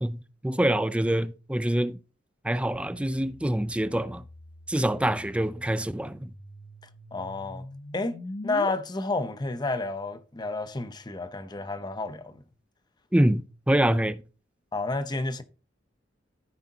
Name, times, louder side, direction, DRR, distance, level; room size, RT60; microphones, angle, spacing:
voice 1, 0.0-2.0 2.4-4.2 4.7-6.3 13.1-14.2, right 1 dB, 5° right, 0.4 m, -25 dB
sound 1, 2.7-8.7, left 2 dB, 45° left, 0.9 m, -43 dB
voice 2, 7.1-7.6 7.9-8.2 8.4-12.4 14.7-15.4, left 3 dB, 25° left, 0.7 m, -30 dB
14.5 x 4.9 x 2.8 m
head